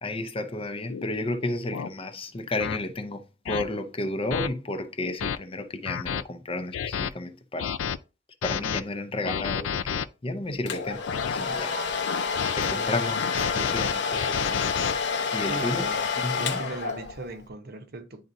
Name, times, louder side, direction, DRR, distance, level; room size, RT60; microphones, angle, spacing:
voice 1, 0.0-7.7 8.4-11.0 11.3-11.7 12.5-14.8 15.3-15.8 16.2-16.6, left 2 dB, 30° left, 0.6 m, -32 dB
sound 1, 0.9-1.1 1.7-1.9 2.6-2.8 3.5-3.6 4.3-4.5 5.0-5.4 5.9-6.2 6.7-7.1 7.6-8.0 8.4-8.8 9.3-10.1 10.7-11.4 12.1-12.7 13.1-14.9, left 7 dB, 85° left, 0.4 m, -30 dB
Domestic sounds home sounds, 10.7-17.3, left 5 dB, 65° left, 0.8 m, -29 dB
voice 2, 15.5-16.1 16.4-18.2, right 2 dB, 55° right, 0.8 m, -38 dB
10.0 x 3.9 x 2.6 m
head